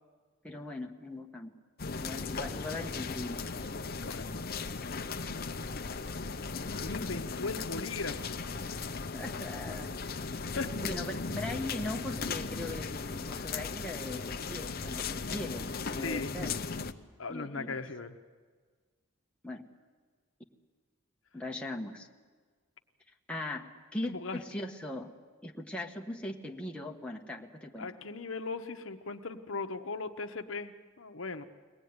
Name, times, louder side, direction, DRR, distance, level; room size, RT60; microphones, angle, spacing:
voice 1, 0.4-1.5 1.9-3.5 9.1-10.2 10.8-16.5 17.3-17.8 19.4-19.6 21.3-22.1 23.3-23.7 23.9-25.1 25.4-27.9, left 1 dB, 5° left, 0 dB, 1.3 m, -39 dB
sound 1, 1.8-16.9, left 4 dB, 45° left, 0.8 m, -37 dB
voice 2, 3.9-4.4 6.8-8.4 10.6-10.8 16.0-16.4 16.9-18.2 24.0-24.4 27.8-31.4, left 3 dB, 70° left, 7 dB, 1.1 m, -38 dB
23.5 x 19.0 x 9.6 m, 1.5 s
head